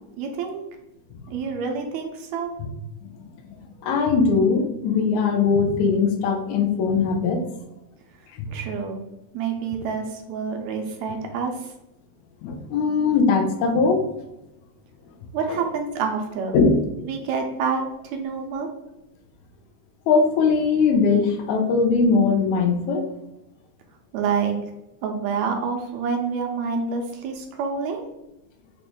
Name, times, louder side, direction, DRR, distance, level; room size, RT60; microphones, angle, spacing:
voice 1, 0.2-0.6 1.3-2.5 8.5-9.0 9.3-11.7 15.3-16.6 17.0-17.8 18.1-18.7 24.1-24.6 25.0-28.0, right 5 dB, 80° right, 3 dB, 1.9 m, -27 dB
voice 2, 3.8-7.4 8.3-8.6 12.4-14.0 15.5-15.6 16.5-16.8 20.1-23.1, left 4 dB, 80° left, 4 dB, 1.9 m, -20 dB
6.0 x 2.5 x 3.5 m, 0.92 s
omnidirectional pair, 3.4 m